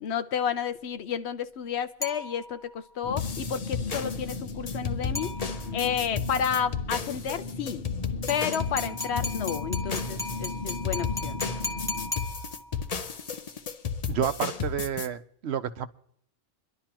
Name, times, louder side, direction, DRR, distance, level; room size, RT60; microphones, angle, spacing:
voice 1, 0.0-5.3 5.7-7.8 8.3-11.4, left 8 dB, 85° left, 12 dB, 1.0 m, -31 dB
sound 1, 2.0-2.8 5.2-5.9 8.3-12.9, left 2 dB, 5° left, 0.8 m, -37 dB
sound 2, 3.0-12.1, left 3 dB, 60° left, 1.1 m, -36 dB
sound 3, 3.2-15.1, left 6 dB, 40° left, 0.7 m, -34 dB
voice 2, 14.1-15.9, right 8 dB, 90° right, 11 dB, 1.0 m, -30 dB
27.5 x 11.5 x 2.9 m, 0.64 s
omnidirectional pair, 1.1 m